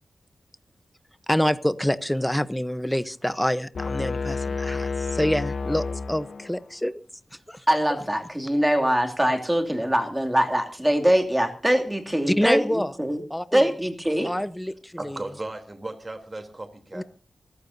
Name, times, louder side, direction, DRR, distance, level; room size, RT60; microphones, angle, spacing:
voice 1, 1.3-7.0 7.5-7.7 12.3-12.9 13.3-13.6 14.2-15.2 16.9-17.0, equal, 5° left, 14 dB, 1.0 m, -26 dB
sound 1, 3.7-6.7, left 4 dB, 65° left, 1.4 m, -30 dB
voice 2, 7.7-13.2 13.5-14.3, equal, 10° right, 4 dB, 2.7 m, -23 dB
voice 3, 15.0-17.0, right 2 dB, 30° right, 7 dB, 3.4 m, -36 dB
26.5 x 14.5 x 2.8 m, 0.37 s
wide cardioid pair, 105°, 0 cm